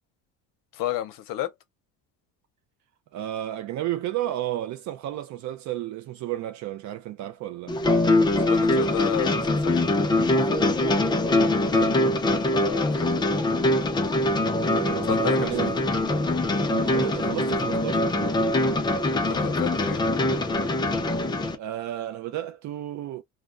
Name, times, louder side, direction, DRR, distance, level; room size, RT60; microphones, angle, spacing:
voice 1, 0.7-1.5 8.4-10.6 12.5-13.3 15.1-15.7 19.3-20.0, left 13 dB, 65° left, 0.7 m, -33 dB
voice 2, 3.1-7.8 11.6-12.1 14.6-15.8 16.7-18.4 21.5-23.2, right 13 dB, 50° right, 0.4 m, -32 dB
sound 1, 7.7-21.6, left 2 dB, 15° left, 0.4 m, -23 dB
2.3 x 2.1 x 3.7 m
cardioid pair, 140°, 36 cm